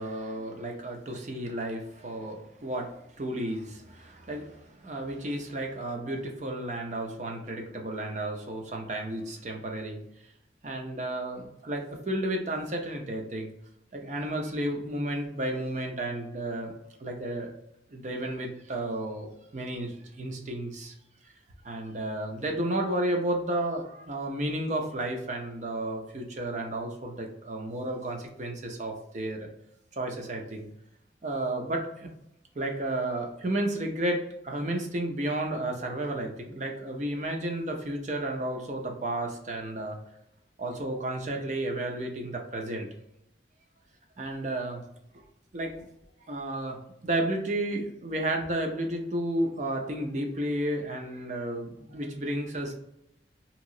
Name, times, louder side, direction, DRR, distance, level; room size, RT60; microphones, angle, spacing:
voice 1, 0.0-10.0 10.6-13.5 13.9-16.7 17.0-17.5 17.9-20.9 21.6-29.5 30.0-30.7 31.2-32.1 32.5-40.0 40.6-42.9 44.2-44.8 45.1-45.2 45.5-45.9 46.3-52.7, right 1 dB, 40° right, 2 dB, 0.6 m, -32 dB
2.9 x 2.9 x 2.6 m, 0.80 s
head